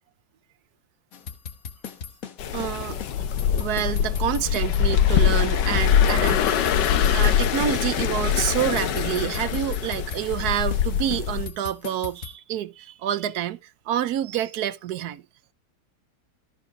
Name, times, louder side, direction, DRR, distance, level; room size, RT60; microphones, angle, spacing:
sound 1, 1.1-2.7 3.0-3.1 3.4-5.5 5.7-7.7 8.0-8.1 8.4-10.8 11.1-12.4, left 7 dB, 55° left, 1.5 m, -38 dB
sound 2, 2.4-11.5, left 9 dB, 85° left, 1.6 m, -23 dB
voice 1, 2.5-3.0 3.6-6.4 7.1-13.6 13.9-15.2, right 11 dB, 70° right, 1.2 m, -27 dB
14.0 x 5.0 x 5.1 m
omnidirectional pair, 1.8 m